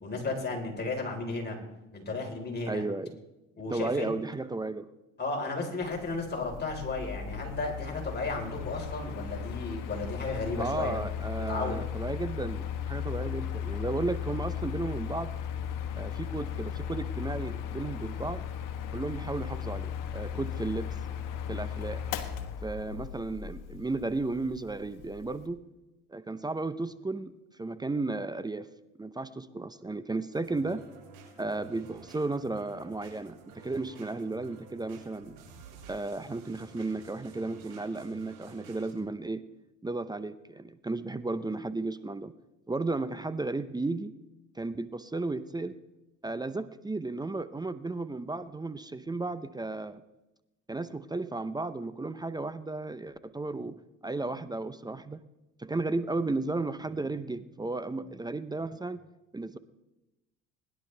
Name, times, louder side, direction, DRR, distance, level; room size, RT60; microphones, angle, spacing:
voice 1, 0.0-1.6 1.9-2.8 3.6-4.1 5.2-11.0 11.5-11.8, left 3 dB, 30° left, 0 dB, 4.0 m, -34 dB
voice 2, 2.7-3.2 3.7-4.9 10.6-15.3 16.0-18.4 18.9-21.0 21.5-22.0 22.6-25.6 26.1-27.3 27.6-28.7 29.0-30.8 31.4-35.4 35.9-39.4 39.8-42.3 42.7-44.1 44.5-45.8 46.2-50.0 50.7-55.2 55.6-59.0 59.3-59.6, right 3 dB, 10° right, 14 dB, 0.6 m, -34 dB
Mechanical fan, 5.8-25.5, left 8 dB, 65° left, 1.4 m, -36 dB
sound 1, 30.3-38.9, right 4 dB, 75° right, 6.0 m, -52 dB
20.5 x 11.0 x 3.3 m, 0.98 s
supercardioid pair, 75°, 34 cm